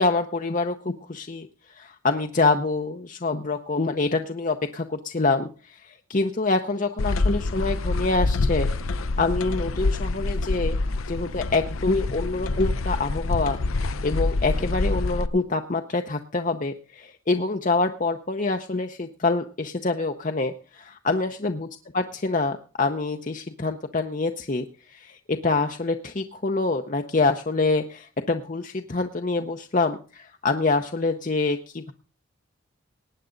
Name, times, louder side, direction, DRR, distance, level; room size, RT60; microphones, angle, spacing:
voice 1, 0.0-10.8 11.1-21.7 21.9-31.9, left 3 dB, 40° left, 5 dB, 0.6 m, -26 dB
sound 1, 7.0-15.3, left 2 dB, 80° left, 0.7 m, -26 dB
19.0 x 8.9 x 3.8 m, 0.35 s
head